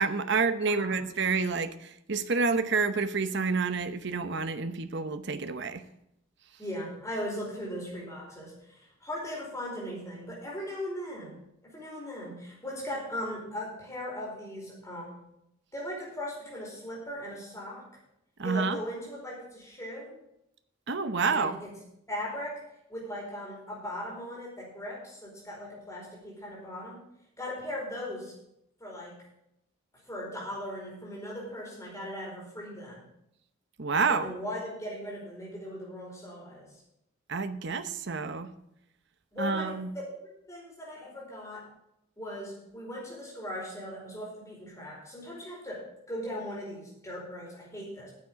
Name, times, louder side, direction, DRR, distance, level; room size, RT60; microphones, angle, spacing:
voice 1, 0.0-5.8 18.4-18.8 20.9-21.6 33.8-34.3 37.3-38.5 39.4-39.9, right 4 dB, 55° right, 10 dB, 0.8 m, -28 dB
voice 2, 6.6-11.4 11.7-15.1 15.7-17.8 18.4-20.2 21.3-21.7 22.1-22.6 22.9-27.0 27.4-28.3 28.8-29.1 30.1-33.0 34.1-36.7 39.3-39.8 40.5-41.7 42.2-48.1, equal, 15° left, -4 dB, 4.7 m, -38 dB
9.6 x 7.3 x 8.6 m, 0.79 s
head